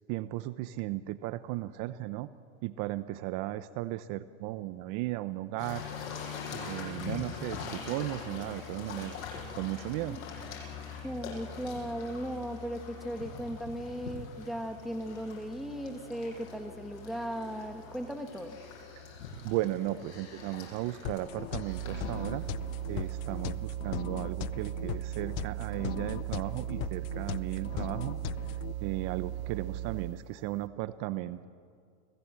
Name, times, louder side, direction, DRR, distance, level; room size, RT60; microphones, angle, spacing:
voice 1, 0.1-2.3 2.6-5.8 6.5-9.2 9.6-10.2 19.0-19.1 19.4-22.4 22.9-28.2 28.8-31.5, right 16 dB, 50° right, 14 dB, 0.8 m, -35 dB
sound 1, 5.6-23.6, left 5 dB, 90° left, 7.8 m, -43 dB
voice 2, 11.0-18.6, equal, ahead, 6 dB, 1.6 m, -37 dB
sound 2, 21.0-28.7, left 18 dB, 55° left, 0.7 m, -39 dB
sound 3, 21.6-30.3, right 13 dB, 90° right, 0.9 m, -37 dB
30.0 x 19.0 x 7.6 m, 2.2 s
supercardioid pair, 135°, 40 cm